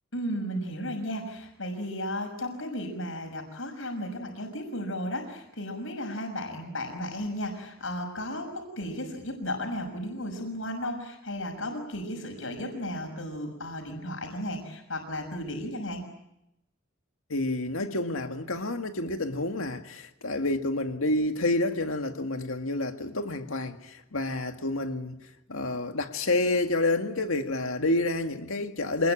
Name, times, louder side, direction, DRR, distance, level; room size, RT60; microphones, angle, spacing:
voice 1, 0.1-16.0, left 1 dB, 70° left, 6.3 m, -34 dB
voice 2, 17.3-29.1, left 2 dB, 85° left, 2.0 m, -29 dB
27.0 x 20.5 x 8.9 m
head